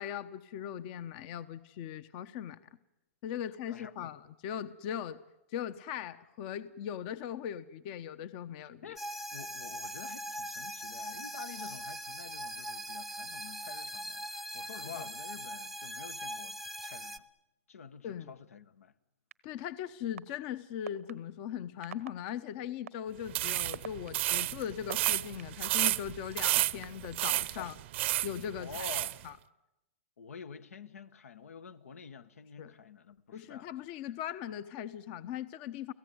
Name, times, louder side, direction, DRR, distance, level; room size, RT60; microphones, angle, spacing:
voice 1, 0.0-2.6 3.2-5.2 5.5-8.8 14.9-15.0 18.0-18.3 19.4-27.7 28.2-28.8 29.2-29.4 32.6-32.7 33.3-35.9, left 9 dB, 45° left, 0.9 m, -39 dB
voice 2, 3.7-4.1 8.6-9.0 9.3-17.2 17.7-18.9 27.6-27.7 28.6-29.1 30.2-33.7, left 7 dB, 85° left, 1.4 m, -48 dB
sound 1, 9.0-17.2, right 1 dB, ahead, 0.9 m, -41 dB
sound 2, 19.3-19.4 20.2-20.3 20.9-21.1 21.8-22.1 22.9-23.0 23.6-25.6 26.3-27.1, right 8 dB, 85° right, 1.3 m, -41 dB
sound 3, 23.3-29.2, right 16 dB, 55° right, 0.8 m, -32 dB
30.0 x 17.0 x 9.5 m
hypercardioid pair, 130°, 8 cm